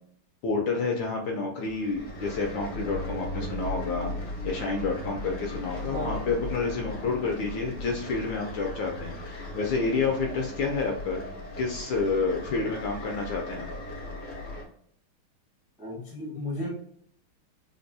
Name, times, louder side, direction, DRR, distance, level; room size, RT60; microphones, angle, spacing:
voice 1, 0.4-4.1 4.4-11.2 11.6-13.7, left 4 dB, 75° left, 1 dB, 1.2 m, -29 dB
sound 1, 1.7-14.6, left 1 dB, 55° left, 0.7 m, -37 dB
voice 2, 15.8-16.7, left 1 dB, 5° right, -5 dB, 0.6 m, -34 dB
4.0 x 2.2 x 2.6 m, 0.65 s
omnidirectional pair, 2.4 m